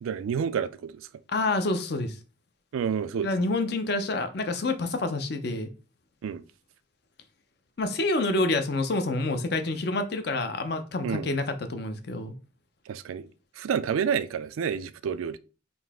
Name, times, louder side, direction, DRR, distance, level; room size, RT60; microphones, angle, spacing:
voice 1, 0.0-1.1 2.7-3.3 6.2-6.4 11.0-11.3 12.9-13.3 13.6-15.4, right 7 dB, 90° right, 0.3 m, -29 dB
voice 2, 1.3-2.2 3.2-5.7 7.8-12.3, left 2 dB, 50° left, 0.5 m, -28 dB
4.0 x 2.6 x 3.5 m
head